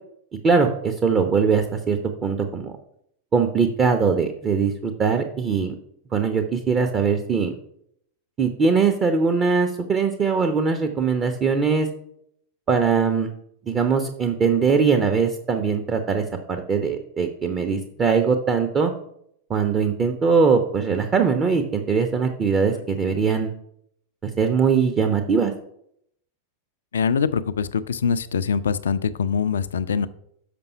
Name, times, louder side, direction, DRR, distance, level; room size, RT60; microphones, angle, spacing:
voice 1, 0.4-2.7 3.3-5.7 6.1-7.6 8.4-11.9 12.7-13.3 13.7-18.9 19.5-23.5 24.2-25.5, right 5 dB, 25° right, 5 dB, 0.7 m, -21 dB
voice 2, 26.9-30.1, left 6 dB, 65° left, 15 dB, 0.4 m, -23 dB
6.8 x 5.4 x 5.6 m, 0.72 s
figure-of-eight pair, 90°, 0 cm